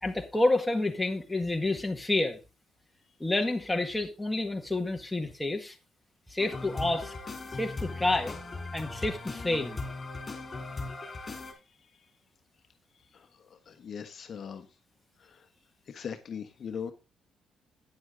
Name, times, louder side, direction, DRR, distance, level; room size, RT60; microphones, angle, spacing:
voice 1, 0.0-2.4 3.2-5.7 6.3-7.1 7.5-8.4 8.7-9.8, left 2 dB, 10° left, 1.7 m, -29 dB
sound 1, 6.4-11.5, left 3 dB, 30° left, 3.3 m, -38 dB
voice 2, 13.7-14.7 15.3-15.4 15.9-16.9, left 7 dB, 55° left, 1.1 m, -39 dB
9.6 x 7.8 x 3.8 m
cardioid pair, 90°, 0 cm